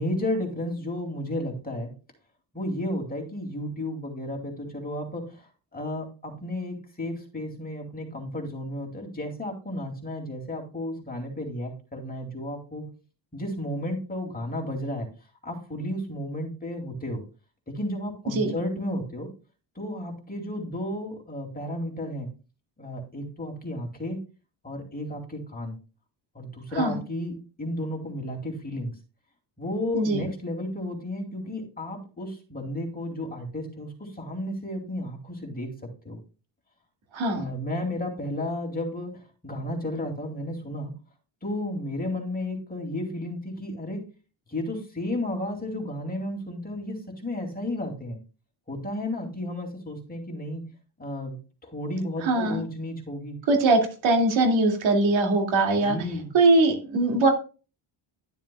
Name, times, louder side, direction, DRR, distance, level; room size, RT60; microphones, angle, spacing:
voice 1, 0.0-1.9 2.5-5.5 5.7-12.8 13.3-15.1 15.4-17.2 17.7-19.3 19.8-22.3 22.8-24.2 24.6-25.8 26.3-28.9 29.6-35.7 36.0-36.2 37.3-40.9 41.4-44.0 44.5-48.2 48.7-50.7 51.0-53.4 55.7-56.3, left 1 dB, 20° left, 1 dB, 2.5 m, -33 dB
voice 2, 37.1-37.5 52.2-52.6 53.5-56.0 56.3-57.3, right 2 dB, 70° right, 3 dB, 2.3 m, -21 dB
12.0 x 7.2 x 2.2 m, 0.34 s
cardioid pair, 125°, 48 cm